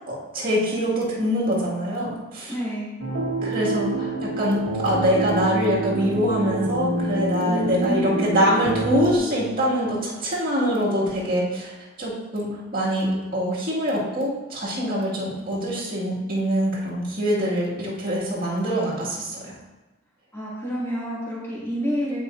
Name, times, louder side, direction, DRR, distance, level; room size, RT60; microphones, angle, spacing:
voice 1, 0.1-2.5 3.4-11.7 12.0-19.4, equal, 45° right, -6 dB, 2.1 m, -24 dB
voice 2, 2.5-2.9 7.4-8.4 20.3-22.2, equal, 10° left, -8 dB, 2.4 m, -28 dB
sound 1, 3.0-9.2, right 2 dB, 65° right, 1.3 m, -27 dB
10.5 x 5.3 x 2.7 m, 1.1 s
head